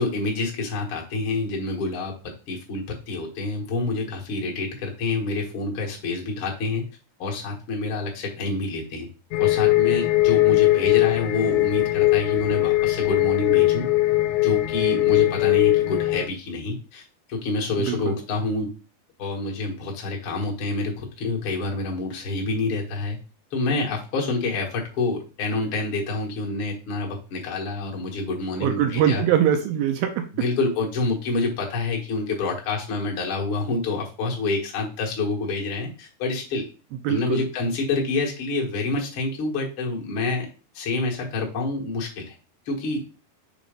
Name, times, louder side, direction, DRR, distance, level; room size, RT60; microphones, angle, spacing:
voice 1, 0.0-6.8 7.2-9.1 9.4-13.9 14.4-17.0 17.3-18.7 19.2-23.2 23.5-29.2 30.3-36.6 37.1-40.5 40.7-42.3 42.6-43.0, left 3 dB, 55° left, -1 dB, 1.5 m, -27 dB
sound 1, 9.3-16.3, left 18 dB, 80° left, 2.4 m, -20 dB
voice 2, 17.8-18.2 28.6-30.3 37.0-37.5, right 9 dB, 80° right, 6 dB, 2.2 m, -22 dB
6.8 x 3.0 x 5.2 m, 0.34 s
omnidirectional pair, 4.7 m